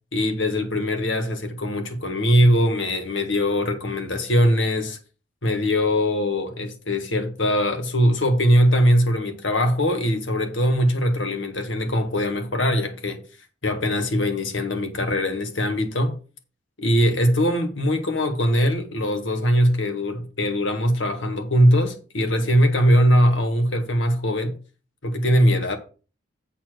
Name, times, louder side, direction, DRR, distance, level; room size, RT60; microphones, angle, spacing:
voice 1, 0.1-5.0 5.4-13.2 13.6-16.2 16.8-24.6 25.0-25.8, equal, 70° left, 1.7 m, -21 dB
8.4 x 4.2 x 6.2 m
head